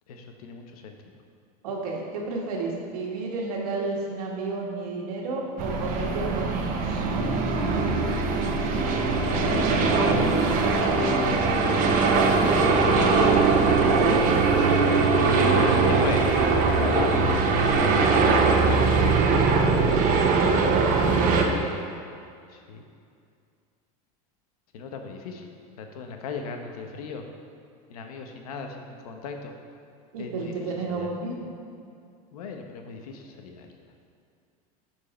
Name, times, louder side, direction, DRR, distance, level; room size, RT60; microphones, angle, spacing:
voice 1, 0.1-1.1 9.3-10.5 10.9-12.0 15.1-18.8 22.5-22.8 24.7-25.5 25.8-27.2 27.9-29.5 30.2-30.5 30.9-31.1 32.3-33.7, left 5 dB, 90° left, 4 dB, 1.1 m, -35 dB
voice 2, 1.6-7.1 21.3-21.8 30.1-31.5, right 3 dB, 85° right, -1 dB, 1.7 m, -32 dB
sound 1, 5.6-21.4, right 4 dB, 45° right, 1.1 m, -21 dB
11.0 x 4.7 x 4.3 m, 2.4 s
supercardioid pair, 120°, 19 cm